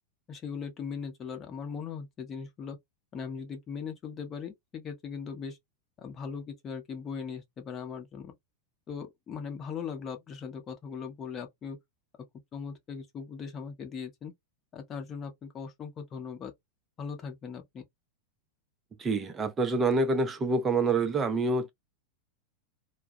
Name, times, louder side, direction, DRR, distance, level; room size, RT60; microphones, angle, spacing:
voice 1, 0.3-2.8 3.1-5.6 6.0-8.4 8.9-11.8 12.5-14.3 14.7-16.5 17.0-17.8, left 6 dB, 25° left, 0.7 m, -39 dB
voice 2, 19.0-21.7, right 3 dB, 20° right, 0.5 m, -27 dB
2.3 x 2.1 x 2.6 m
figure-of-eight pair, 90°, 0 cm